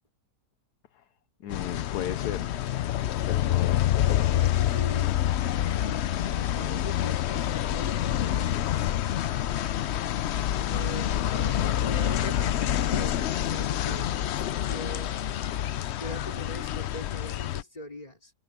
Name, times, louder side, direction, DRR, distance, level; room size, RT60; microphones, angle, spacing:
voice 1, 1.4-2.5 3.3-4.3 10.5-10.9, left 11 dB, 70° left, 1.3 m, -36 dB
sound 1, 1.5-17.6, left 11 dB, 90° left, 0.5 m, -27 dB
voice 2, 4.3-5.1 5.8-6.0 6.3-8.7 10.7-15.2 16.0-18.3, left 1 dB, 20° left, 4.8 m, -41 dB
omnidirectional pair, 1.8 m